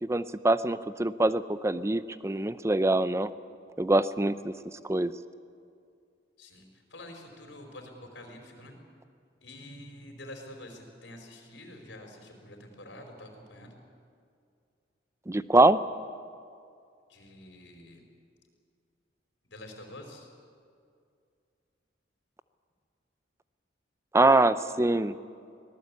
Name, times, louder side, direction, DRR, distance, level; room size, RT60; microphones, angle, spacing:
voice 1, 0.0-3.3 3.8-4.5 4.8-5.1 15.3-15.8 24.1-25.1, right 2 dB, 15° right, 14 dB, 0.6 m, -24 dB
voice 2, 6.4-8.8 9.4-13.7 17.1-18.0 19.5-20.3, left 1 dB, 90° left, 2 dB, 4.7 m, -47 dB
24.5 x 18.0 x 8.5 m, 2.3 s
head